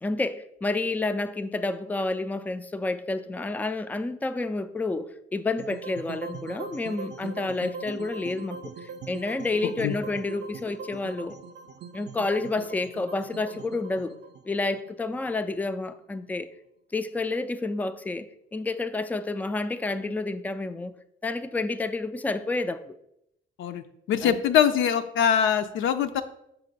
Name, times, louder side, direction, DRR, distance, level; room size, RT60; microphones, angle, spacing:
voice 1, 0.0-11.4 11.9-14.1 14.5-16.5 16.9-20.9 21.2-23.0 24.2-24.3, left 3 dB, 10° left, 0.3 m, -29 dB
sound 1, 5.6-15.8, right 5 dB, 60° right, 0.5 m, -41 dB
voice 2, 24.1-26.2, left 8 dB, 80° left, 0.5 m, -23 dB
5.8 x 3.3 x 5.2 m
cardioid pair, 90°, 20 cm